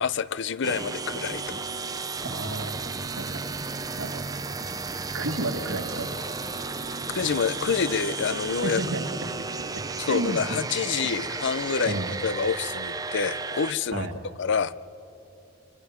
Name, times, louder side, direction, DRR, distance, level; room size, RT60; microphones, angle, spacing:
voice 1, 0.0-1.7 7.1-8.8 10.0-14.8, left 6 dB, 60° left, 0.5 m, -27 dB
sound 1, 0.6-13.7, right 4 dB, 20° right, 0.6 m, -33 dB
voice 2, 2.2-2.8 3.2-3.4 4.0-4.2 5.1-6.1 8.6-9.0 9.9-10.6 11.9-12.1 13.9-14.1, right 2 dB, 85° right, 2.0 m, -31 dB
27.0 x 24.5 x 5.1 m
head